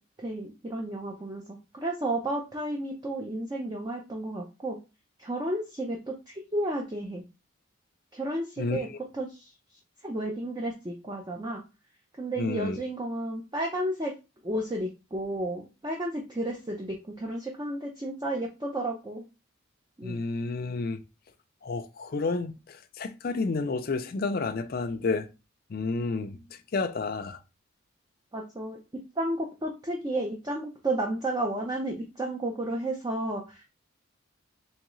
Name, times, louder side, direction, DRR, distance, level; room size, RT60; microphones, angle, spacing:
voice 1, 0.2-4.8 5.2-7.2 8.1-8.9 9.1-9.5 10.0-11.6 12.2-14.1 14.4-19.3 20.0-20.2 28.3-33.6, right 1 dB, 20° right, 0.5 m, -32 dB
voice 2, 8.6-9.0 12.4-12.8 20.0-21.0 21.6-25.3 25.7-27.4, left 3 dB, 45° left, 0.4 m, -31 dB
3.6 x 3.0 x 3.0 m
head